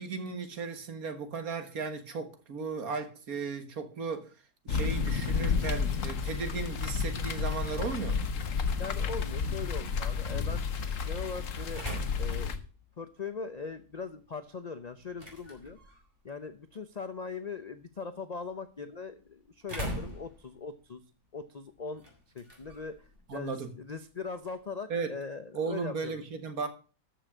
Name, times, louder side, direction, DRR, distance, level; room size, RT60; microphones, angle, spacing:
voice 1, 0.0-4.3 4.7-8.3 23.3-23.7 24.9-25.2 25.5-26.7, right 5 dB, 65° right, 2.0 m, -36 dB
sound 1, 4.7-12.6, left 5 dB, 55° left, 1.4 m, -31 dB
sound 2, 4.8-24.7, equal, 35° right, 4.3 m, -47 dB
voice 2, 8.8-10.6 11.1-12.5 13.0-15.9 16.2-21.0 21.3-22.0 22.3-26.1, left 5 dB, 40° left, 0.6 m, -40 dB
13.5 x 6.2 x 6.2 m
omnidirectional pair, 1.7 m